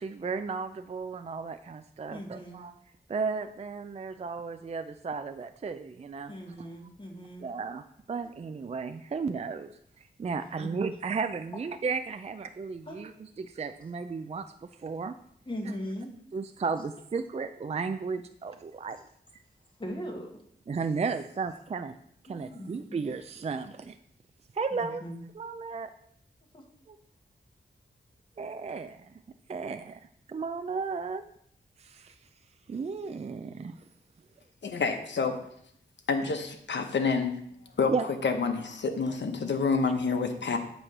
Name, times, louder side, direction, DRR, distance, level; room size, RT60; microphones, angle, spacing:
voice 1, 0.0-2.7 3.1-6.3 6.6-6.7 7.4-9.7 10.2-13.1 13.4-14.5 14.8-15.1 16.3-19.0 20.7-21.9 22.3-24.0 24.5-25.0 25.4-25.9 26.9-27.0 28.4-29.0 29.5-30.0 30.3-31.2 31.8-32.2 32.7-33.7 37.9-38.1, right 5 dB, 35° right, 9 dB, 0.4 m, -34 dB
voice 2, 2.1-2.7 6.3-7.5 10.4-10.7 12.9-13.0 15.5-16.1 19.8-20.3 22.3-23.0 24.7-25.2 26.5-26.6, equal, 25° left, 0 dB, 1.8 m, -39 dB
voice 3, 34.6-35.4 36.1-37.3 37.8-40.6, left 4 dB, 70° left, 6 dB, 1.0 m, -28 dB
8.8 x 3.2 x 6.5 m, 0.69 s
cardioid pair, 60°, 19 cm